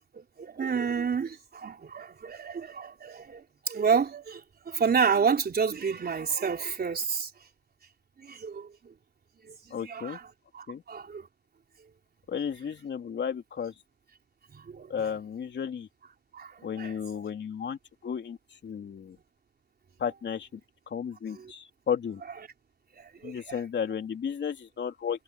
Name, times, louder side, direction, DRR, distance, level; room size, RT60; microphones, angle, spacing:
voice 1, 0.1-7.3 8.2-8.9 9.4-10.2 10.5-11.3 14.5-15.1 16.3-17.0 21.3-21.5 22.9-23.6, right 6 dB, 50° right, 4.3 m, -30 dB
voice 2, 9.7-10.2 10.7-10.8 12.3-13.7 14.9-15.9 16.6-19.2 20.0-20.6 20.9-22.2 23.2-25.2, left 7 dB, 60° left, 3.0 m, -33 dB
cardioid pair, 75°, 21 cm